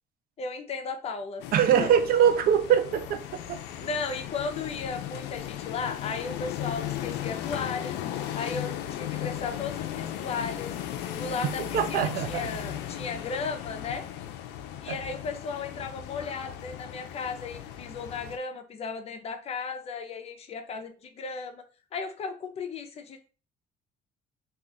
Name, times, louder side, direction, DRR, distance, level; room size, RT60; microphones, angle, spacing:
voice 1, 0.4-1.4 1.8-1.9 3.8-8.0 8.3-10.7 11.1-14.0 14.8-21.6 21.9-23.3, left 4 dB, 40° left, 0.6 m, -35 dB
sound 1, 1.4-18.4, left 11 dB, 90° left, 0.4 m, -36 dB
voice 2, 1.5-3.6 11.6-12.5 14.9-15.0, right 9 dB, 60° right, 0.5 m, -23 dB
2.4 x 2.3 x 3.8 m
cardioid pair, 110°, 17 cm